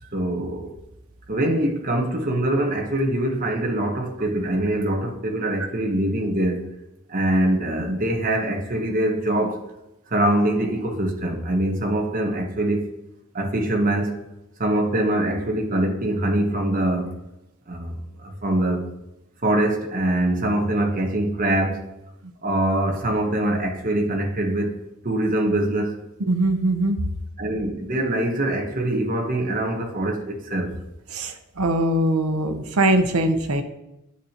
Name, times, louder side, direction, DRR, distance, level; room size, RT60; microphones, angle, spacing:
voice 1, 0.1-0.7 1.3-6.7 7.1-9.6 10.1-12.9 13.3-14.2 14.6-17.1 17.7-18.9 19.4-21.9 22.4-24.8 25.0-26.0 27.4-30.7, right 1 dB, 40° right, 1.1 m, -23 dB
voice 2, 26.3-27.0 31.1-33.6, right 1 dB, 85° right, 0.9 m, -21 dB
9.3 x 8.1 x 3.0 m
head